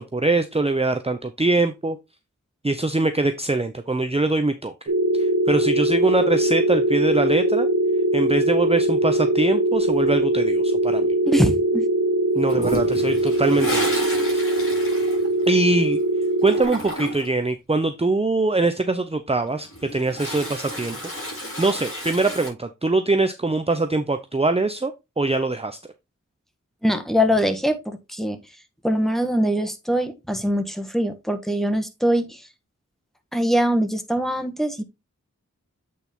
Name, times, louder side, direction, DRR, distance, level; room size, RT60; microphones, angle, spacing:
voice 1, 0.0-2.0 2.6-7.7 8.1-11.1 12.3-14.0 14.3-14.4 15.5-16.0 16.4-21.0 21.2-25.8, right 2 dB, 20° right, 0.6 m, -23 dB
sound 1, 4.9-16.6, right 1 dB, 85° right, 2.2 m, -21 dB
voice 2, 11.2-11.8 26.8-28.4 28.8-32.4 33.3-34.8, equal, ahead, 1.4 m, -22 dB
Toilet flush, 12.5-17.4 19.4-22.5, equal, 45° left, 4.7 m, -32 dB
8.2 x 4.2 x 3.6 m
wide cardioid pair, 45°, 30 cm